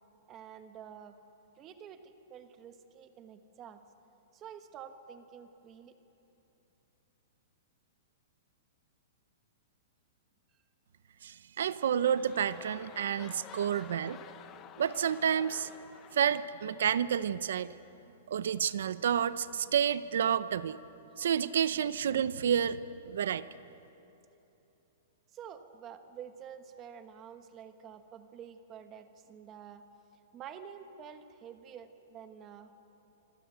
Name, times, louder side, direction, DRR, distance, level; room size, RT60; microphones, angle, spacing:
voice 1, 0.3-1.2 1.5-3.8 4.3-6.0 13.5-13.6 14.1-14.2 25.3-29.9 30.3-32.8, right 8 dB, 15° right, 8 dB, 1.1 m, -49 dB
voice 2, 11.2-14.2 14.8-15.7 16.1-17.7 18.3-20.8 21.2-22.8 23.1-23.4, right 8 dB, 65° right, 15 dB, 0.6 m, -30 dB
sound 1, 11.6-17.9 18.6-18.7, left 9 dB, 15° left, 0.8 m, -52 dB
26.0 x 25.5 x 8.0 m, 3.0 s
hypercardioid pair, 180°, 0 cm